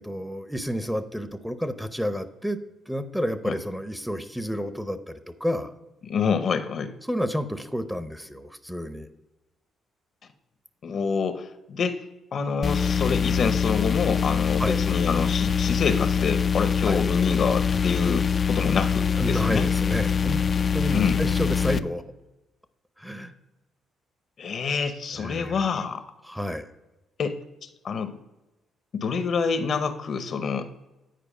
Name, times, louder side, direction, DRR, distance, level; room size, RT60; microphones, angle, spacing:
voice 1, 0.0-2.6 2.9-5.7 7.1-9.1 14.6-14.8 16.8-17.0 19.2-20.4 20.7-22.0 23.0-23.3 25.1-25.7 26.2-26.7, equal, ahead, 9 dB, 0.7 m, -30 dB
voice 2, 6.0-6.9 10.8-12.0 12.3-19.7 20.9-21.2 24.4-26.0 27.2-27.4 27.8-28.2 28.9-30.7, left 5 dB, 55° left, 10 dB, 0.7 m, -27 dB
sound 1, 12.6-21.8, left 6 dB, 40° left, 0.3 m, -24 dB
9.3 x 4.8 x 4.9 m, 1.0 s
cardioid pair, 90°, 0 cm